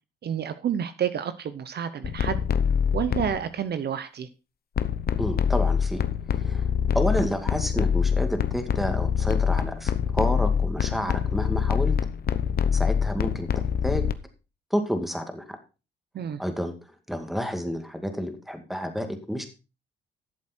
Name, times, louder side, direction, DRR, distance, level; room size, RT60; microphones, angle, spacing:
voice 1, 0.2-2.4 2.9-4.3 16.1-16.4, right 8 dB, 55° right, 0.9 m, -29 dB
sound 1, 2.0-3.5 4.8-14.1, left 7 dB, 50° left, 0.9 m, -25 dB
voice 2, 5.2-6.7 6.9-11.9 12.7-13.5 13.8-14.1 14.7-15.4 16.4-16.7 17.1-19.5, equal, ahead, 2.2 m, -30 dB
12.5 x 7.3 x 4.4 m
cardioid pair, 90°, 20 cm